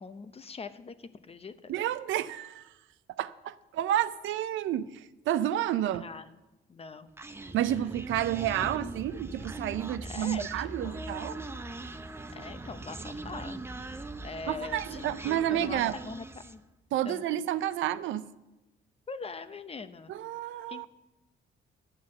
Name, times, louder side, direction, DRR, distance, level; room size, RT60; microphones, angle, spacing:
voice 1, 0.0-1.7 6.0-6.3 6.7-7.1 8.6-8.7 10.0-11.1 12.3-16.6 17.0-17.2 19.1-20.1 20.7-21.1, left 4 dB, 30° left, 0.7 m, -43 dB
voice 2, 1.7-2.7 3.1-6.1 7.5-11.4 14.5-15.9 16.9-18.3 20.1-20.9, right 12 dB, 80° right, 0.5 m, -30 dB
Human voice, 7.2-16.6, right 2 dB, 10° right, 0.6 m, -41 dB
11.5 x 5.8 x 7.7 m
cardioid pair, 90°, 20 cm